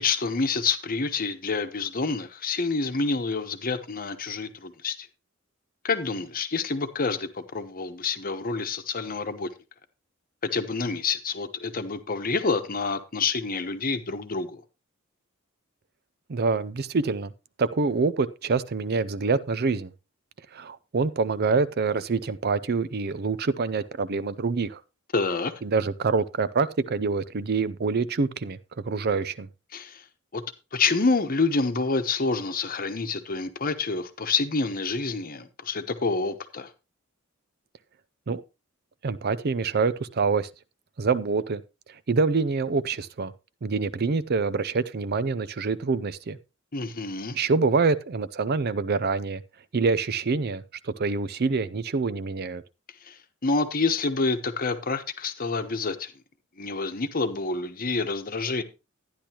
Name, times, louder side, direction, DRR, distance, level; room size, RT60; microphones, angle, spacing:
voice 1, 0.0-5.1 5.8-9.5 10.4-14.6 25.1-25.5 29.7-30.0 30.3-30.4 30.7-36.7 46.7-47.4 53.0-56.1 56.6-58.6, left 4 dB, 45° left, 1.0 m, -28 dB
voice 2, 16.3-17.3 17.6-19.9 20.5-24.8 25.6-28.6 28.9-29.5 38.3-38.4 39.0-40.5 41.0-41.6 42.1-43.3 43.6-46.4 47.3-49.4 49.7-52.6, right 4 dB, 50° right, 0.5 m, -26 dB
12.0 x 10.0 x 2.9 m
head